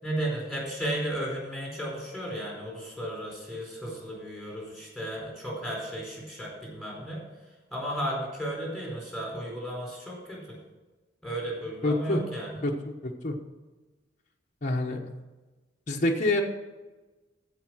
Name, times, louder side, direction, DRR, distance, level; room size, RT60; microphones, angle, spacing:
voice 1, 0.0-7.2 7.7-10.6 11.2-12.6, right 1 dB, ahead, -3 dB, 4.4 m, -34 dB
voice 2, 11.8-12.2 12.6-13.4 14.6-15.0 15.9-16.4, left 2 dB, 40° left, 0 dB, 1.1 m, -27 dB
15.0 x 5.2 x 6.2 m, 1.2 s
head